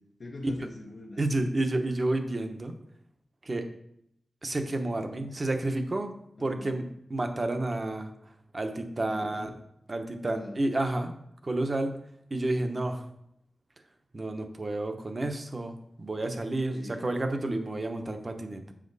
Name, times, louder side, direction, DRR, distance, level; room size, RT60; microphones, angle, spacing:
voice 1, 0.0-1.5 6.4-6.8 9.1-9.6 10.2-10.6 16.7-17.1, left 2 dB, 65° left, -1 dB, 0.9 m, -44 dB
voice 2, 1.2-2.7 3.4-3.6 4.4-6.1 6.4-6.8 7.1-8.1 8.5-9.5 9.9-11.1 11.4-12.0 12.3-13.0 14.1-18.7, right 2 dB, 35° right, 6 dB, 0.9 m, -30 dB
7.5 x 5.8 x 4.0 m, 0.76 s
wide cardioid pair, 100°, 0 cm